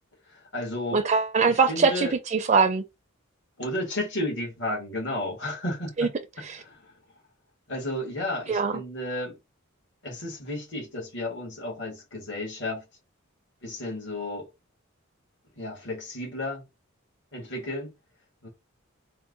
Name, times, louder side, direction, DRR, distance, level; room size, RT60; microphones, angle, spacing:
voice 1, 0.3-1.1 1.5-2.1 3.6-6.1 6.4-6.8 7.7-9.4 10.0-12.8 13.6-14.4 15.6-16.6 17.3-17.9 18.4-18.5, left 1 dB, 60° left, 1.6 m, -33 dB
voice 2, 0.9-2.8 6.0-6.1 6.4-6.6 8.5-8.7, right 4 dB, 35° right, 0.4 m, -22 dB
4.5 x 2.2 x 3.8 m
head